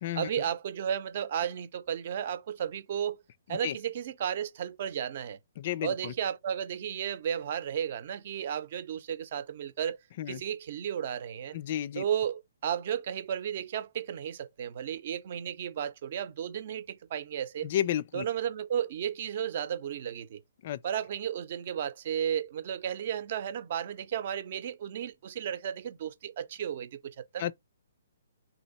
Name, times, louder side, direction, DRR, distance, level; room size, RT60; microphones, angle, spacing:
voice 1, 0.1-3.2 3.5-5.4 5.8-10.0 10.3-11.6 11.9-17.7 18.1-20.4 20.8-27.4, right 9 dB, 50° right, 0.7 m, -33 dB
voice 2, 5.6-6.1 10.2-10.4 11.5-12.0 17.6-18.2 20.6-20.8 27.4-27.5, left 11 dB, 45° left, 0.4 m, -32 dB
3.9 x 3.0 x 4.1 m
hypercardioid pair, 150°, 0 cm